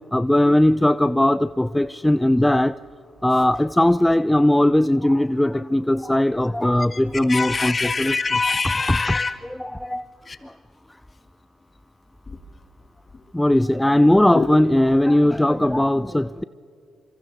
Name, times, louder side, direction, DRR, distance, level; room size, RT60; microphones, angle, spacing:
voice 1, 0.1-2.8 3.2-8.2 8.9-9.0 9.5-10.0 13.3-16.4, left 1 dB, 10° left, 0.4 m, -19 dB
voice 2, 7.3-9.3 10.3-10.4 14.3-14.5, left 4 dB, 40° left, 2.0 m, -24 dB
26.5 x 25.0 x 4.7 m
hypercardioid pair, 50°, 0 cm